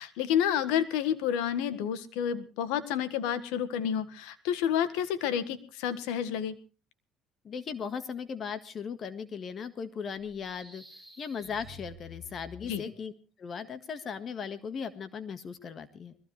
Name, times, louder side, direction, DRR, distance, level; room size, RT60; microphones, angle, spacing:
voice 1, 0.0-6.5 12.6-12.8, left 9 dB, 80° left, 13 dB, 1.6 m, -30 dB
voice 2, 7.4-10.8 11.2-13.1 13.4-16.2, left 6 dB, 40° left, 12 dB, 1.6 m, -37 dB
sound 1, 10.2-13.1, left 1 dB, 10° left, 6.5 m, -50 dB
21.5 x 15.5 x 3.3 m, 0.33 s
supercardioid pair, 105°, 0 cm